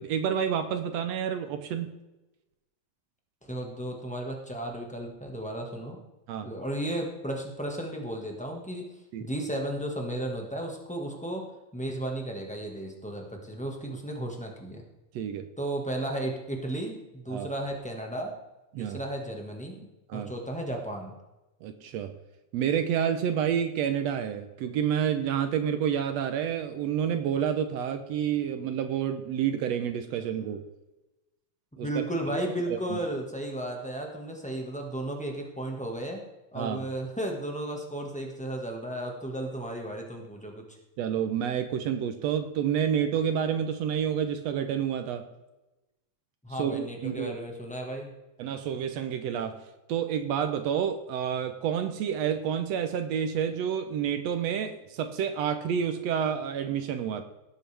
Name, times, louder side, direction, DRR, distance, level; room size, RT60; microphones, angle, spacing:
voice 1, 0.0-2.0 6.3-6.5 9.1-9.3 15.2-15.5 17.3-17.5 18.7-19.0 20.1-20.3 21.6-22.1 22.5-30.6 31.8-32.0 32.7-33.0 36.6-36.8 41.0-45.3 46.6-47.4 48.4-49.6 49.9-57.2, right 8 dB, 70° right, 9 dB, 1.8 m, -29 dB
voice 2, 3.4-6.0 6.4-8.9 9.2-14.8 15.6-18.3 18.8-21.1 31.7-36.2 36.5-40.8 46.4-48.1, right 1 dB, 10° left, 1 dB, 0.3 m, -34 dB
18.0 x 8.0 x 3.4 m, 1.0 s
omnidirectional pair, 3.4 m